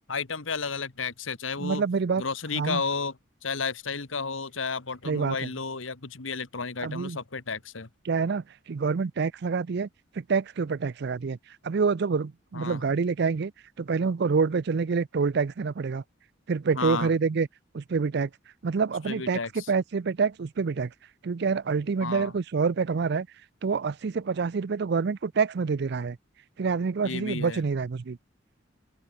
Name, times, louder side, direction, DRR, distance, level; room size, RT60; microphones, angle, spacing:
voice 1, 0.1-1.8 2.2-3.2 3.4-7.9 12.5-12.8 16.7-17.1 19.1-19.7 22.0-22.3 27.0-27.6, left 5 dB, 85° left, 1.6 m, -32 dB
voice 2, 1.6-2.2 2.5-2.8 5.1-5.5 6.8-7.2 8.1-9.9 10.2-11.4 11.6-13.5 13.8-16.0 16.5-17.5 17.7-18.3 18.6-20.9 21.2-23.3 23.6-26.2 26.6-28.2, right 5 dB, 55° right, 0.5 m, -27 dB
open air
head